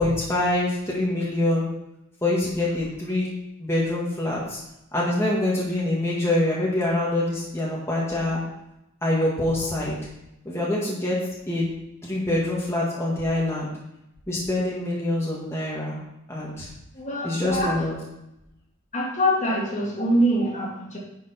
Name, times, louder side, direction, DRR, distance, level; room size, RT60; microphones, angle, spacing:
voice 1, 0.0-1.6 2.2-3.3 3.6-4.6 4.9-8.4 9.0-10.0 10.5-11.2 11.5-11.7 12.0-13.7 14.3-16.0 16.3-16.7 17.2-17.9, left 1 dB, 15° left, -6 dB, 1.9 m, -25 dB
voice 2, 16.9-17.8 18.9-21.0, equal, 35° left, -2 dB, 2.3 m, -24 dB
10.0 x 6.2 x 4.4 m, 0.87 s
head